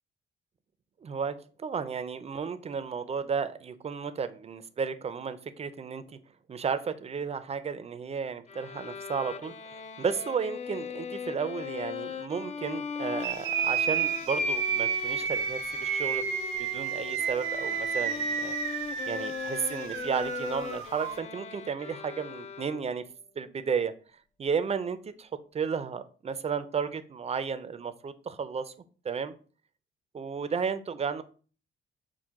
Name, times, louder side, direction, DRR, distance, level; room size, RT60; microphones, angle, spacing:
voice 1, 1.0-6.0 6.5-16.3 16.6-18.6 19.1-23.0 23.4-23.9 24.4-28.7 29.0-29.3 30.1-31.2, right 6 dB, 30° right, 12 dB, 0.5 m, -33 dB
Bowed string instrument, 8.5-23.1, left 6 dB, 35° left, 0.4 m, -39 dB
sound 1, 13.2-21.1, right 6 dB, 90° right, 0.8 m, -31 dB
6.2 x 2.2 x 3.6 m, 0.39 s
cardioid pair, 90°, 20 cm